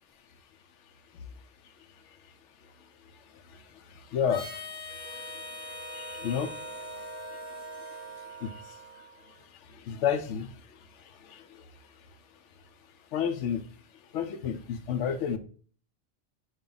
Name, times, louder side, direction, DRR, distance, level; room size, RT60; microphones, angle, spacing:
voice 1, 1.6-2.3 2.6-12.1 13.1-13.7 13.9-15.4, left 8 dB, 85° left, 9 dB, 0.9 m, -35 dB
Harmonica, 4.3-9.0, left 4 dB, 45° left, 0.5 m, -43 dB
sound 1, 5.0-9.5, right 6 dB, 65° right, 0.7 m, -45 dB
5.2 x 2.4 x 3.8 m, 0.44 s
omnidirectional pair, 1.2 m